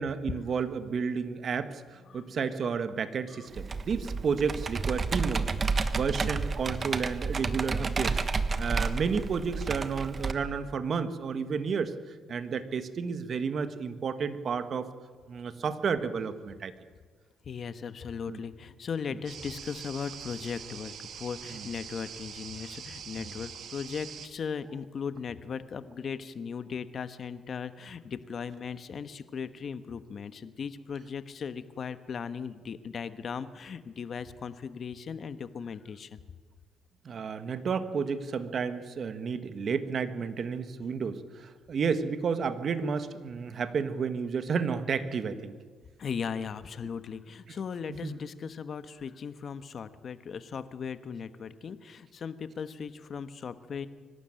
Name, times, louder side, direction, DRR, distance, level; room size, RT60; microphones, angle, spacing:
voice 1, 0.0-8.2 8.6-14.9 15.3-16.7 18.3-18.4 21.5-21.6 23.2-23.3 37.0-45.5 48.0-48.1, right 6 dB, 50° right, 11 dB, 1.5 m, -31 dB
Computer keyboard, 3.6-10.3, right 4 dB, 35° right, 1.3 m, -31 dB
voice 2, 17.4-36.2 46.0-53.9, left 6 dB, 50° left, 12 dB, 1.2 m, -38 dB
sound 1, 19.3-24.3, right 7 dB, 70° right, 2.1 m, -44 dB
24.5 x 12.5 x 9.1 m, 1.5 s
cardioid pair, 90°, 0 cm